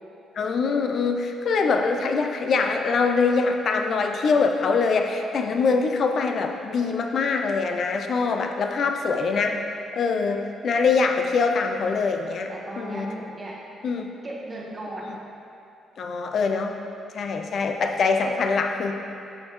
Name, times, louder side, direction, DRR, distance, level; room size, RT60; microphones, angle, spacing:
voice 1, 0.4-13.1 13.8-14.1 16.0-16.8 17.1-18.9, left 4 dB, 55° left, 5 dB, 0.4 m, -24 dB
voice 2, 12.5-13.6 14.2-15.1, right 1 dB, 25° right, -3 dB, 1.4 m, -36 dB
7.1 x 6.5 x 3.1 m, 2.6 s
cardioid pair, 90°, 0 cm